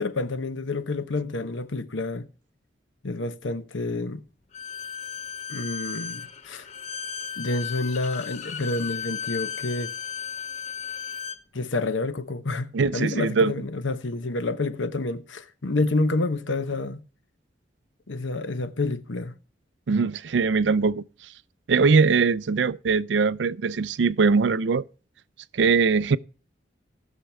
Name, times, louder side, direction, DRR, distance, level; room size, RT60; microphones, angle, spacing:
voice 1, 0.0-2.3 3.0-4.2 5.5-6.7 7.4-9.9 11.5-17.0 18.1-19.3, left 2 dB, 85° left, 1.0 m, -28 dB
Bowed string instrument, 4.5-11.4, left 7 dB, 35° left, 0.7 m, -35 dB
voice 2, 12.7-13.5 19.9-21.0 21.7-24.8 25.5-26.2, right 5 dB, 70° right, 0.4 m, -21 dB
18.0 x 6.6 x 3.4 m
head